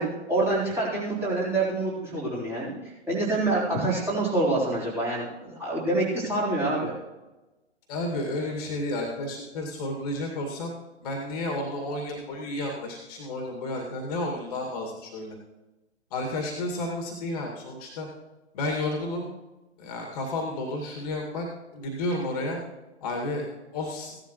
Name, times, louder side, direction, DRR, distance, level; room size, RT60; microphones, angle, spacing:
voice 1, 0.0-2.7 3.1-6.9, right 2 dB, 5° right, -7 dB, 3.9 m, -26 dB
voice 2, 7.9-10.7 11.0-15.3 16.1-18.1 18.5-19.3 19.8-21.5 21.7-22.6 23.0-23.5 23.7-24.2, left 1 dB, 35° left, 1 dB, 2.1 m, -31 dB
16.0 x 11.5 x 3.1 m, 1.1 s
figure-of-eight pair, 120°, 34 cm